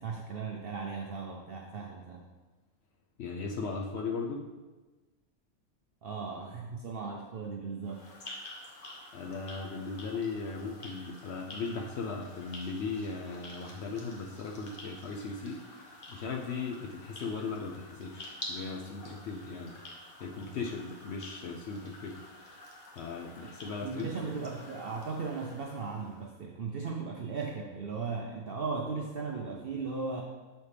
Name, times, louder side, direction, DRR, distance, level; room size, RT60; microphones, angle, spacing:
voice 1, 0.0-2.2 6.0-8.0 23.8-30.2, right 4 dB, 65° right, 1 dB, 0.6 m, -37 dB
voice 2, 3.2-4.4 9.1-19.8 20.2-22.2 23.0-24.1, left 4 dB, 65° left, 0 dB, 0.7 m, -37 dB
sound 1, 7.8-26.3, left 1 dB, 40° left, 1.1 m, -49 dB
6.9 x 4.3 x 3.3 m, 1.2 s
omnidirectional pair, 1.5 m